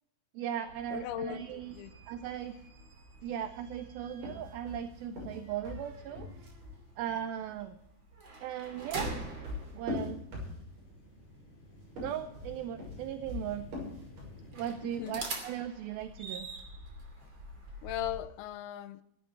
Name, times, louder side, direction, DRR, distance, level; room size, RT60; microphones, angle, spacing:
voice 1, 0.3-1.8 2.1-2.6 3.2-6.3 7.0-7.8 8.4-9.1 9.7-10.2 12.0-13.7 14.5-16.5, right 10 dB, 80° right, 2.5 m, -38 dB
sound 1, 0.6-18.2, right 2 dB, 35° right, 3.1 m, -46 dB
voice 2, 0.9-1.9 14.8-15.3 17.8-19.0, left 12 dB, 85° left, 2.7 m, -38 dB
sound 2, 4.1-6.8 8.5-10.9 11.8-14.4, left 2 dB, 60° right, 7.7 m, -41 dB
sound 3, 9.9-15.1, left 1 dB, 55° left, 6.6 m, -54 dB
17.5 x 10.5 x 4.8 m
omnidirectional pair, 4.4 m